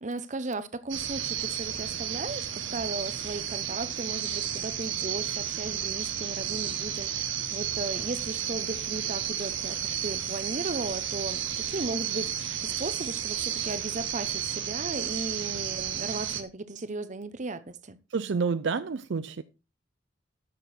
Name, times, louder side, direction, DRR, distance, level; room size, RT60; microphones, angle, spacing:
voice 1, 0.0-18.0, right 2 dB, 40° right, 0.9 m, -36 dB
sound 1, 0.9-16.4, right 9 dB, 85° right, 1.6 m, -32 dB
voice 2, 18.1-19.4, right 5 dB, 65° right, 0.5 m, -29 dB
13.0 x 6.9 x 4.3 m
head